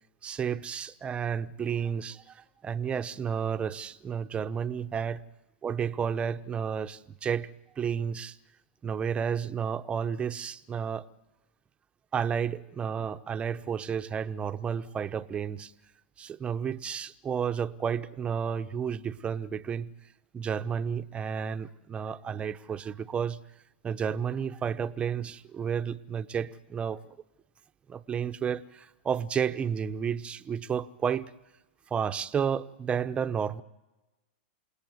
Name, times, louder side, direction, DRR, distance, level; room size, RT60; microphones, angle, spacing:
voice 1, 0.2-2.2 2.6-5.2 5.6-7.5 7.8-8.3 8.8-11.0 12.1-15.7 16.2-19.9 20.3-23.4 23.8-27.0 27.9-28.6 29.0-31.2 31.9-33.6, right 7 dB, 15° right, 0.8 m, -31 dB
28.5 x 18.5 x 9.5 m
hypercardioid pair, 130°, 6 cm